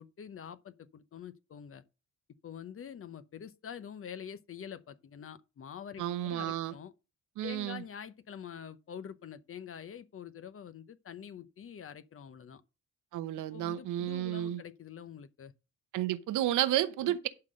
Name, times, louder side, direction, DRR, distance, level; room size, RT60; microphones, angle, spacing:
voice 1, 0.0-1.8 2.4-6.9 7.4-12.6 13.5-15.5 17.0-17.1, left 8 dB, 45° left, 0.9 m, -46 dB
voice 2, 6.0-6.7 7.4-7.8 13.1-14.6 15.9-17.3, right 13 dB, 85° right, 0.9 m, -31 dB
11.5 x 4.0 x 6.4 m
cardioid pair, 90°, 30 cm